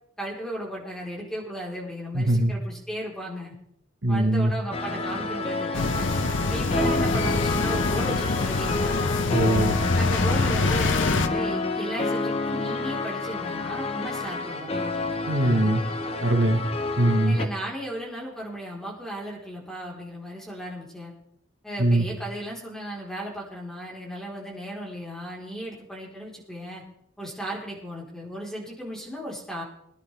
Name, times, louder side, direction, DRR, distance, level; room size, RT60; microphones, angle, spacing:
voice 1, 0.2-3.5 4.1-6.1 6.5-9.0 9.9-14.7 17.2-21.1 21.6-26.8 27.2-29.6, equal, 5° left, -4 dB, 4.0 m, -35 dB
voice 2, 2.1-2.5 4.0-4.5 9.3-9.8 15.3-15.8 16.2-16.6 17.0-17.4 21.8-22.1, right 1 dB, 65° right, 4 dB, 1.5 m, -21 dB
sound 1, 4.7-17.5, left 3 dB, 30° left, 1.0 m, -29 dB
sound 2, 5.7-11.3, left 3 dB, 70° left, 0.9 m, -25 dB
22.0 x 11.0 x 3.4 m, 0.73 s
head